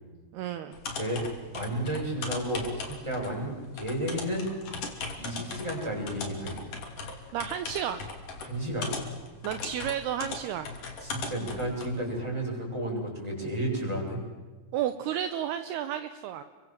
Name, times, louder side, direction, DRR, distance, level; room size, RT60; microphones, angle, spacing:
voice 1, 0.3-0.8 7.3-8.0 9.4-10.7 14.7-16.4, right 10 dB, 75° right, 9 dB, 2.8 m, -32 dB
sound 1, 0.7-11.9, left 4 dB, 50° left, 4.2 m, -39 dB
voice 2, 1.5-4.5 5.2-6.6 8.4-8.9 11.0-14.2, right 1 dB, 5° right, -1 dB, 7.5 m, -32 dB
30.0 x 24.0 x 7.6 m, 1.3 s
omnidirectional pair, 5.0 m